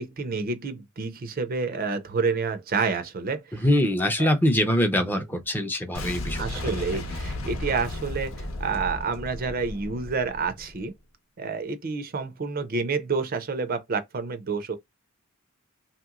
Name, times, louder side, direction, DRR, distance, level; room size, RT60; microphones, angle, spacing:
voice 1, 0.0-3.7 4.2-4.3 6.4-10.9 11.4-14.8, right 4 dB, 45° right, 0.5 m, -29 dB
voice 2, 3.5-6.5, left 1 dB, 10° left, 0.5 m, -23 dB
Boom, 5.9-10.9, left 1 dB, 75° left, 0.8 m, -34 dB
3.0 x 2.9 x 2.3 m
head